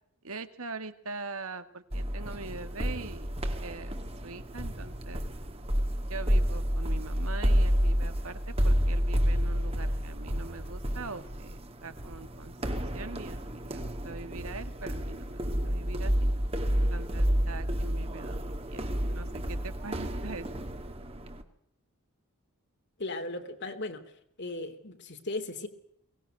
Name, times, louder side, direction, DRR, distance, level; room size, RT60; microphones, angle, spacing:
voice 1, 0.2-3.3 3.6-4.0 4.2-5.2 6.1-16.3 16.8-18.8 19.1-20.7, right 3 dB, 70° right, 10 dB, 2.0 m, -43 dB
sound 1, 1.9-21.4, equal, 25° right, 2.1 m, -30 dB
voice 2, 23.0-24.0 24.4-25.7, left 2 dB, 50° left, 7 dB, 3.1 m, -36 dB
23.0 x 19.0 x 7.8 m, 0.74 s
head